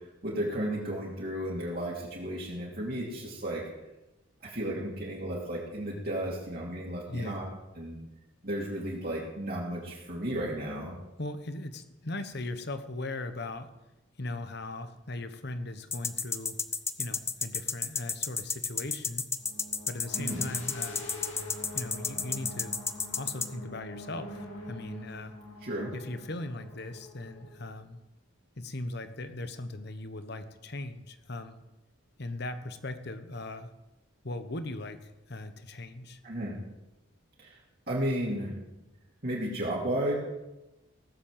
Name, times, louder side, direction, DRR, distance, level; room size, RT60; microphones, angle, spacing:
voice 1, 0.2-3.6 4.4-7.5 7.8-8.0 8.4-11.0 20.1-20.5 25.6-25.9 36.2-36.6 37.4-37.5 37.9-38.5 39.2-40.1, right 1 dB, 45° right, -4 dB, 2.9 m, -33 dB
voice 2, 7.1-7.4 11.2-13.7 14.2-16.6 17.0-19.3 19.9-21.1 21.7-22.8 23.2-24.4 24.7-25.3 25.9-28.0 28.6-31.6 32.2-33.7 34.2-36.2, left 2 dB, 50° left, 10 dB, 1.1 m, -39 dB
sound 1, 15.9-23.5, left 5 dB, 15° left, 0.5 m, -31 dB
sound 2, 17.3-17.4 19.4-27.7, left 1 dB, 65° left, 3.2 m, -45 dB
17.5 x 7.4 x 7.5 m, 0.99 s
head